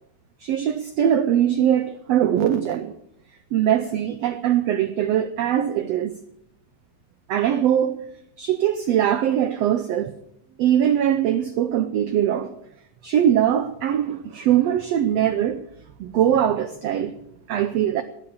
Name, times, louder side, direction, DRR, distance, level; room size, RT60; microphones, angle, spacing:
voice 1, 0.4-2.9 3.5-6.2 7.3-8.0 8.4-10.1 10.6-12.5 13.0-15.6 16.0-17.1 17.5-18.0, right 10 dB, 90° right, 1.4 m, -21 dB
18.0 x 9.7 x 7.1 m
omnidirectional pair, 3.9 m